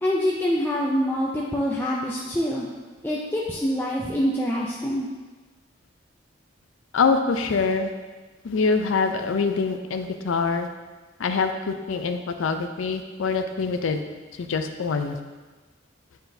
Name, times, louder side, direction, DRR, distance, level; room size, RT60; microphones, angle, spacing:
voice 1, 0.0-2.7 3.0-5.1, equal, 10° left, -4 dB, 0.4 m, -25 dB
voice 2, 6.9-7.9 8.4-10.7 11.2-14.0 14.4-15.2, left 4 dB, 85° left, 7 dB, 0.5 m, -24 dB
9.1 x 3.9 x 2.7 m, 1.3 s
head